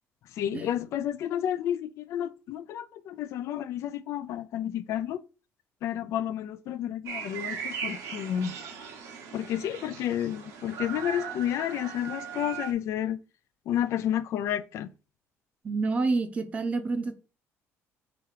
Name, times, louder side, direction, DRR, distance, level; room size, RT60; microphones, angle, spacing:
voice 1, 0.4-5.2 5.8-8.5 9.3-13.2 13.7-14.9, left 10 dB, 65° left, 0.3 m, -31 dB
sound 1, 7.1-12.7, right 7 dB, 75° right, 1.0 m, -38 dB
voice 2, 15.6-17.1, right 3 dB, 25° right, 0.6 m, -28 dB
3.6 x 2.9 x 4.8 m
cardioid pair, 145°, 5 cm